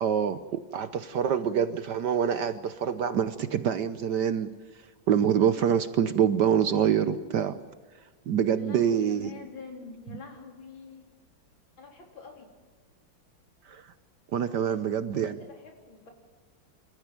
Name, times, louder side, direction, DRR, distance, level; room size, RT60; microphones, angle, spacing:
voice 1, 0.0-4.5 5.1-7.5 8.3-9.3 13.7-13.8 14.3-15.4, right 8 dB, 65° right, 12 dB, 1.2 m, -26 dB
voice 2, 8.5-11.1 11.8-12.5 14.4-14.8 15.1-16.1, left 4 dB, 65° left, 2 dB, 4.4 m, -46 dB
27.0 x 14.0 x 9.0 m, 1.5 s
omnidirectional pair, 2.3 m